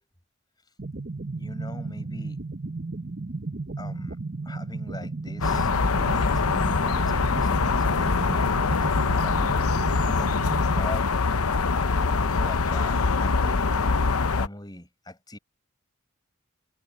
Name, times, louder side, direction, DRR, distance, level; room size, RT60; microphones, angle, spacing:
sound 1, 0.8-10.8, right 3 dB, 45° right, 1.0 m, -34 dB
voice 1, 1.3-2.4 3.8-4.2 4.4-6.6 6.8-9.4 10.1-11.2 11.9-13.9 14.3-15.4, left 1 dB, 20° left, 6.6 m, -41 dB
sound 2, 5.4-14.5, left 4 dB, 90° left, 0.9 m, -23 dB
head